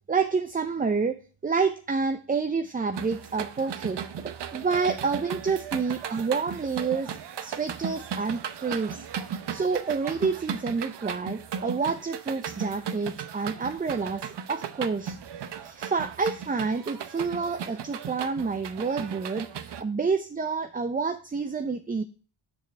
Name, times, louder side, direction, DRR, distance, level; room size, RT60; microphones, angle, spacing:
voice 1, 0.1-1.2 1.4-7.2 7.4-9.0 9.5-15.2 15.6-22.0, right 5 dB, 20° right, 8 dB, 0.4 m, -28 dB
sound 1, 2.9-19.8, right 8 dB, 55° right, 0.7 m, -36 dB
6.4 x 5.2 x 4.4 m, 0.39 s
cardioid pair, 60°, 49 cm